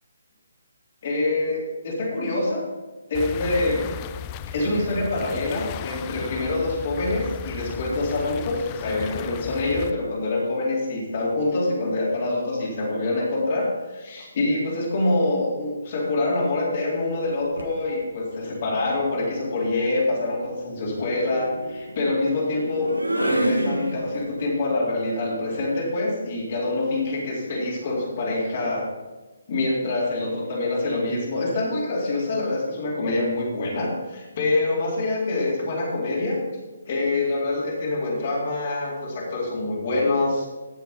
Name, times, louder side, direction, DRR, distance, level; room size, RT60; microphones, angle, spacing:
voice 1, 1.0-2.6 3.1-3.9 4.5-28.9 29.5-36.4 36.9-40.5, left 2 dB, 40° left, -4 dB, 3.8 m, -25 dB
sound 1, 3.1-9.9, left 9 dB, 25° left, 0.4 m, -36 dB
sound 2, 17.2-17.8 19.1-24.4, right 1 dB, 85° right, 1.5 m, -30 dB
15.0 x 6.8 x 5.2 m, 1.2 s
figure-of-eight pair, 140°, 0 cm